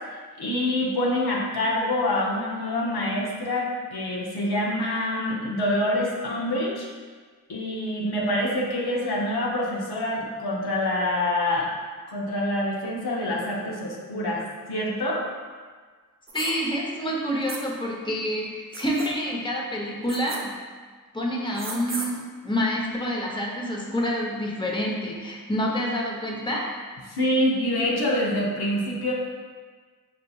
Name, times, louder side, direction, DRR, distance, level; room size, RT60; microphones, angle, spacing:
voice 1, 0.4-6.9 7.5-11.7 12.1-14.4 14.7-15.3 27.1-29.1, left 1 dB, 90° left, -3 dB, 0.7 m, -26 dB
voice 2, 16.3-20.5 21.1-26.6, equal, 15° left, -2 dB, 0.7 m, -28 dB
sound 1, 16.3-16.5 17.5-17.6 18.7-19.1 20.1-20.4 21.5-22.1, right 3 dB, 35° right, 0.6 m, -34 dB
5.1 x 2.7 x 2.3 m, 1.5 s
cardioid pair, 45°, 37 cm